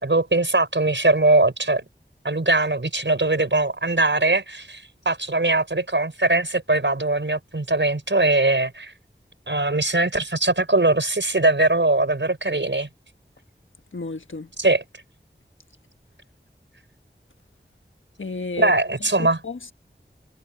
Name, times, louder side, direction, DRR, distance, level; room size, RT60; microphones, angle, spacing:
voice 1, 0.0-1.8 2.2-8.9 9.5-12.9 14.6-14.8 18.6-19.4, right 2 dB, 70° right, 5.9 m, -21 dB
voice 2, 13.9-14.5 18.2-18.7 19.2-19.7, left 3 dB, 90° left, 1.4 m, -32 dB
wide cardioid pair, 40°, 20 cm